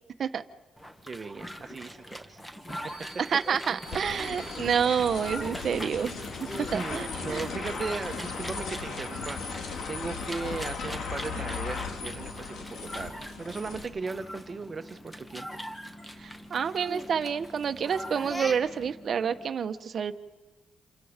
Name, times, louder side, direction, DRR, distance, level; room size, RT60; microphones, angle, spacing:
sound 1, 0.8-18.9, equal, 10° left, 2.1 m, -42 dB
sound 2, 0.9-19.5, equal, 25° left, 7.5 m, -49 dB
voice 1, 1.0-2.4 6.7-9.4 9.9-15.5, right 4 dB, 35° right, 9 dB, 1.5 m, -37 dB
voice 2, 3.2-6.1 6.5-7.5 16.2-20.1, right 7 dB, 50° right, 9 dB, 1.3 m, -28 dB
sound 3, 3.9-13.8, left 5 dB, 70° left, 2.7 m, -37 dB
29.0 x 25.0 x 5.3 m, 1.2 s
cardioid pair, 90°, 0 cm